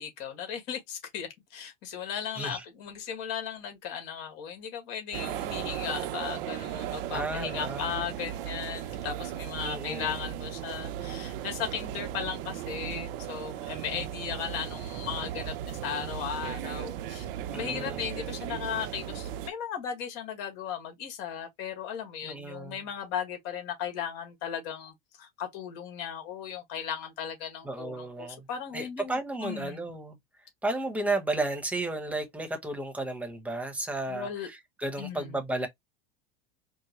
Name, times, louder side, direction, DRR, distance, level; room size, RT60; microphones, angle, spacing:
voice 1, 0.0-17.2 17.5-29.9 34.1-34.5 35.0-35.4, left 8 dB, 55° left, 1.7 m, -36 dB
voice 2, 2.3-2.6 7.1-7.9 9.6-10.2 17.5-18.1 22.2-22.9 27.6-28.4 28.7-30.2 30.6-35.7, right 2 dB, 5° right, 1.0 m, -33 dB
sound 1, 5.1-19.5, right 11 dB, 65° right, 0.7 m, -36 dB
4.6 x 2.1 x 2.9 m
supercardioid pair, 115°, 29 cm